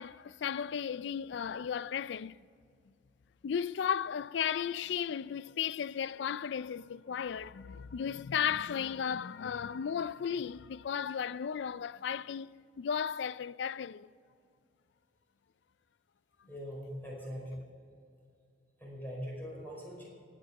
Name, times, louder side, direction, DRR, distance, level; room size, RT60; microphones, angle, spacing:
voice 1, 0.0-2.4 3.4-14.1, left 8 dB, 70° left, 0.3 m, -35 dB
voice 2, 16.5-17.7 18.8-20.1, equal, 10° left, 4.9 m, -42 dB
17.0 x 9.3 x 6.9 m
head